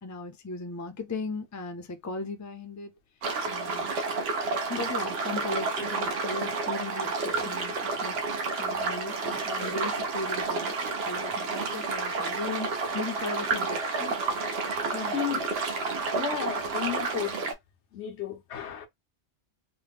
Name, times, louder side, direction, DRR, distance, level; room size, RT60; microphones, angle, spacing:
voice 1, 0.0-2.9 3.5-3.9 4.7-8.3 8.6-14.5 14.9-15.4, left 3 dB, 20° left, 0.5 m, -37 dB
sound 1, 3.2-17.5, right 4 dB, 65° right, 0.9 m, -30 dB
voice 2, 15.1-15.5 16.1-17.4 17.9-18.9, left 9 dB, 80° left, 1.0 m, -33 dB
3.0 x 2.2 x 3.4 m
omnidirectional pair, 1.2 m